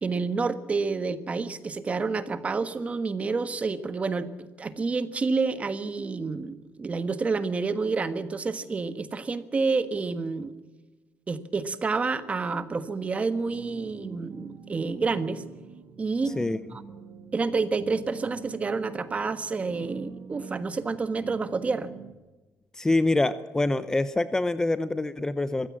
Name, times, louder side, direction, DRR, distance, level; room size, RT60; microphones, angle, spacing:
voice 1, 0.0-10.5 11.3-15.4 16.0-16.3 16.7-16.8 17.3-21.9, right 4 dB, 25° right, 12 dB, 1.4 m, -29 dB
sound 1, 13.3-22.1, right 7 dB, 70° right, 2.1 m, -44 dB
voice 2, 22.7-25.7, left 2 dB, 10° left, 13 dB, 0.7 m, -25 dB
23.0 x 15.5 x 7.4 m, 1.2 s
cardioid pair, 145°, 5 cm